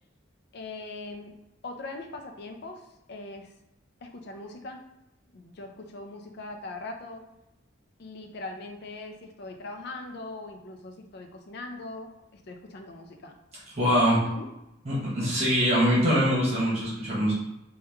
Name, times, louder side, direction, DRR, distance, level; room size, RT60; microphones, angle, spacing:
voice 1, 0.5-1.3 1.6-3.5 4.0-4.8 5.3-7.2 8.0-13.4 14.0-14.5, left 2 dB, 55° left, 4 dB, 0.4 m, -41 dB
voice 2, 13.7-14.2 14.8-17.3, equal, 35° right, -7 dB, 1.1 m, -23 dB
3.0 x 2.3 x 3.4 m, 0.90 s
head